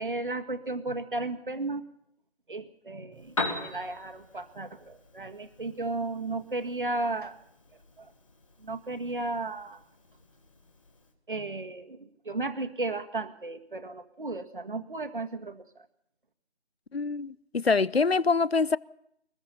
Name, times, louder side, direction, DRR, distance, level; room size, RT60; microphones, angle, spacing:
voice 1, 0.0-1.8 2.5-7.4 8.0-8.1 8.6-9.8 11.3-15.6, right 2 dB, 50° right, 1.9 m, -34 dB
Piano, 3.1-11.1, left 2 dB, 30° left, 2.5 m, -41 dB
voice 2, 16.9-18.8, left 4 dB, 65° left, 0.7 m, -25 dB
23.5 x 20.5 x 5.7 m
figure-of-eight pair, 165°, 34 cm